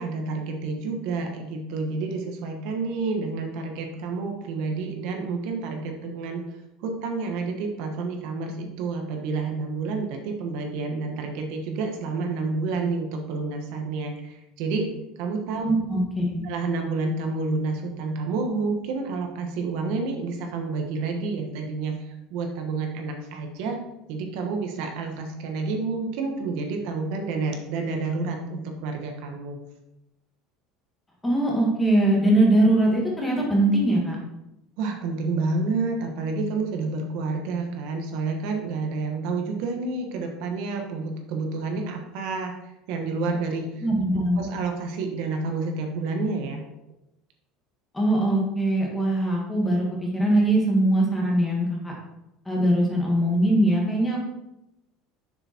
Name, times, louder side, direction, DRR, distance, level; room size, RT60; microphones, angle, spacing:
voice 1, 0.0-6.4 6.8-14.9 15.2-15.6 16.4-23.8 24.1-29.6 34.8-43.8 44.3-46.6, right 3 dB, 60° right, 3 dB, 1.3 m, -29 dB
voice 2, 15.6-16.4 31.2-34.2 43.8-44.5 47.9-51.9 52.5-54.2, right 1 dB, 5° left, -2 dB, 1.8 m, -21 dB
7.0 x 6.9 x 4.4 m, 0.88 s
cardioid pair, 175°, 0 cm